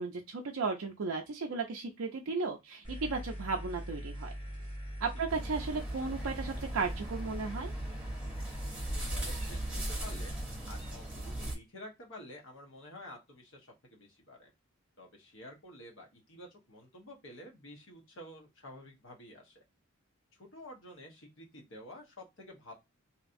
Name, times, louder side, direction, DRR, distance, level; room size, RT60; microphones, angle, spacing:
voice 1, 0.0-4.3 5.0-7.7, right 4 dB, 75° right, 2 dB, 0.5 m, -35 dB
sound 1, 2.8-10.4, equal, 25° left, 1.4 m, -41 dB
sound 2, 5.3-11.5, right 1 dB, 5° right, 1.0 m, -39 dB
voice 2, 8.9-10.3 10.7-14.5 15.0-19.6 20.4-22.7, left 1 dB, 60° left, 0 dB, 1.1 m, -50 dB
3.1 x 2.8 x 2.5 m, 0.21 s
head